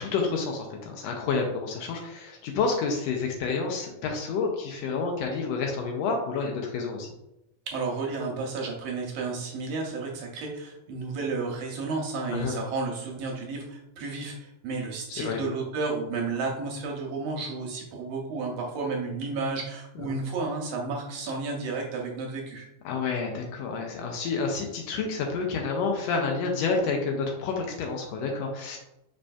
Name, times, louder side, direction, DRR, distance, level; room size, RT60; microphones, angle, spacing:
voice 1, 0.0-7.1 12.3-12.6 15.1-15.4 20.0-20.2 22.8-28.8, left 4 dB, 85° left, 1 dB, 1.4 m, -29 dB
voice 2, 7.7-22.7, right 4 dB, 75° right, -1 dB, 1.6 m, -32 dB
5.1 x 4.4 x 2.3 m, 0.86 s
omnidirectional pair, 3.6 m